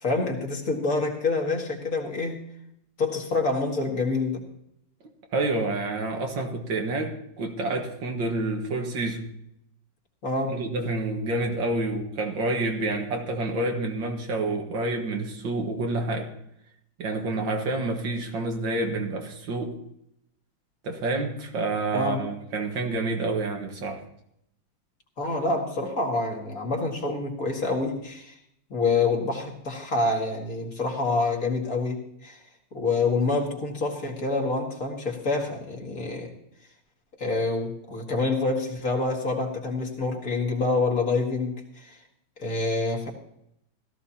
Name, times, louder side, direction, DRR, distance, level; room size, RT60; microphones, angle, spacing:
voice 1, 0.0-2.4 3.0-4.4 10.2-10.6 21.9-22.3 25.2-28.4 28.7-32.4 32.7-36.3 37.2-42.0 42.4-43.1, left 3 dB, 50° left, 2.3 m, -27 dB
voice 2, 5.3-9.3 10.4-16.3 17.0-19.8 20.8-24.0, right 2 dB, 90° right, 2.3 m, -28 dB
16.5 x 14.0 x 2.9 m
omnidirectional pair, 2.0 m